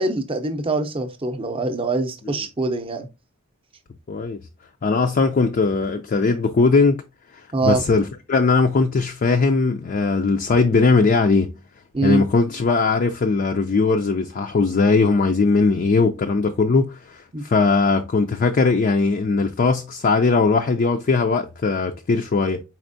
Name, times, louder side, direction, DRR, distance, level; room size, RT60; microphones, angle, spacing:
voice 1, 0.0-3.1 7.5-7.8 11.9-12.3 17.3-17.4, right 2 dB, 25° right, 0.6 m, -24 dB
voice 2, 4.1-4.4 4.8-7.0 7.3-11.5 12.0-22.6, left 4 dB, 40° left, 0.4 m, -19 dB
4.4 x 4.1 x 2.6 m
head